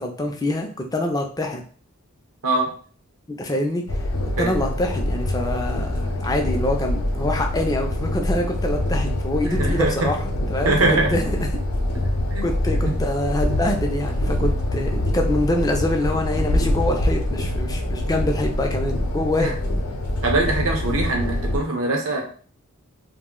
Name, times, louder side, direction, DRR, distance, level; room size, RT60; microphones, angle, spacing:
voice 1, 0.0-1.6 3.3-3.8 4.4-11.6 12.4-19.5, left 1 dB, 15° left, 3 dB, 0.3 m, -25 dB
sound 1, 3.9-21.6, left 1 dB, 85° left, 0.6 m, -24 dB
voice 2, 9.5-10.1 10.6-11.1 12.3-12.5 12.9-13.0 19.4-19.5 20.2-22.2, right 2 dB, 80° right, 1 dB, 0.7 m, -22 dB
2.5 x 2.0 x 3.7 m, 0.43 s
head